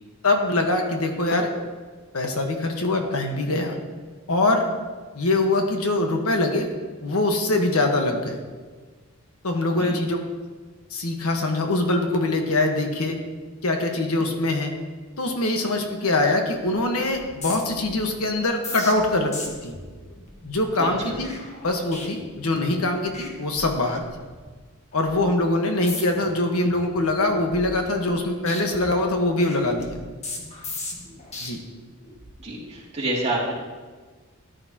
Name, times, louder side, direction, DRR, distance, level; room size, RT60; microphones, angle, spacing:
voice 1, 0.2-1.5 2.1-3.8 4.3-4.7 5.1-6.7 7.0-8.4 9.4-10.2 10.9-13.2 13.6-14.7 15.2-19.7 20.4-21.3 21.6-24.0 24.9-30.0 31.4-31.6, left 2 dB, 75° left, 3 dB, 1.4 m, -23 dB
sound 1, 16.5-16.8 17.0-22.8 23.1-23.3 23.6-24.5 24.9-25.2 25.7-26.3 26.7-28.2 28.5-31.5 32.0-32.3, left 2 dB, 30° left, 1.5 m, -38 dB
voice 2, 20.8-21.2 32.4-33.5, right 1 dB, 30° right, -5 dB, 2.7 m, -28 dB
13.5 x 10.5 x 2.9 m, 1.4 s
head